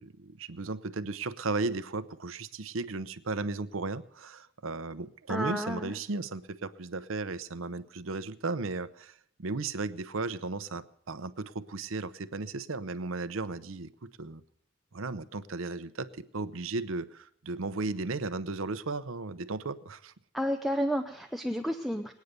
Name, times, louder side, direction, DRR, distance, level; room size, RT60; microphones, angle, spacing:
voice 1, 0.0-14.4 14.9-20.1, right 3 dB, 90° right, 14 dB, 0.8 m, -35 dB
voice 2, 5.3-5.9 20.3-22.1, equal, ahead, 4 dB, 0.6 m, -31 dB
20.5 x 9.3 x 6.7 m, 0.69 s
head